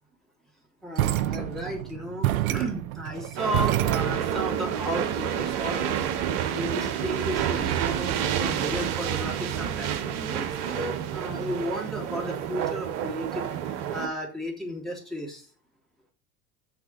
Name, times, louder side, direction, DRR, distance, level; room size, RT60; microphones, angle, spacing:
voice 1, 0.8-6.0 6.5-15.5, equal, ahead, -2 dB, 3.1 m, -34 dB
sound 1, 1.0-4.5, right 14 dB, 70° right, 0.5 m, -28 dB
sound 2, 3.4-14.1, right 9 dB, 50° right, 1.1 m, -29 dB
6.6 x 6.0 x 7.2 m, 0.40 s
figure-of-eight pair, 75°, 45 cm